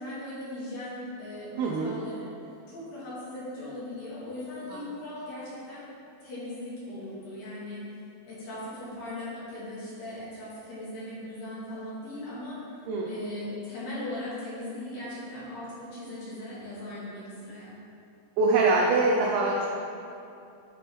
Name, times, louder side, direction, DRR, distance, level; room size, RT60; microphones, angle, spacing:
voice 1, 0.0-2.3 2.7-5.9 6.2-7.9 8.2-12.6 13.0-17.7, left 1 dB, 60° left, -9 dB, 3.1 m, -39 dB
voice 2, 1.6-1.9 4.7-4.8 12.9-13.1 18.4-19.6, right 3 dB, 85° right, -2 dB, 2.2 m, -24 dB
11.0 x 4.1 x 3.6 m, 2.7 s
omnidirectional pair, 5.2 m